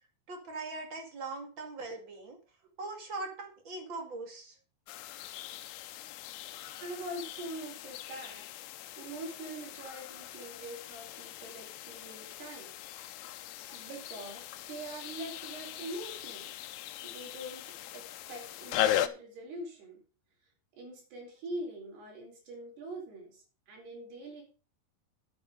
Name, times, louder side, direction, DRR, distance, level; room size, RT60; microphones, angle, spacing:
voice 1, 0.3-2.4 2.8-4.6, right 3 dB, 35° right, 4 dB, 2.3 m, -41 dB
sound 1, 4.9-19.1, left 12 dB, 80° left, 2.8 m, -39 dB
voice 2, 6.8-8.5 9.0-12.8 13.7-16.6 17.0-20.0 20.7-24.4, right 1 dB, 85° right, 0 dB, 6.4 m, -43 dB
10.0 x 8.4 x 5.2 m, 0.36 s
omnidirectional pair, 4.6 m